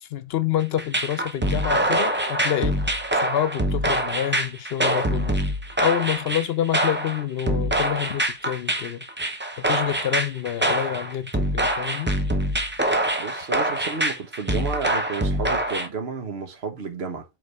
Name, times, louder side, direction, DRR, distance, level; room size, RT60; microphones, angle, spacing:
voice 1, 0.0-2.8 3.1-5.4 5.8-9.1 9.6-12.1, left 11 dB, 75° left, 0.9 m, -27 dB
sound 1, 0.8-15.9, right 1 dB, 10° right, 0.7 m, -24 dB
voice 2, 13.2-17.2, right 5 dB, 75° right, 1.4 m, -32 dB
5.2 x 3.9 x 4.6 m
omnidirectional pair, 1.1 m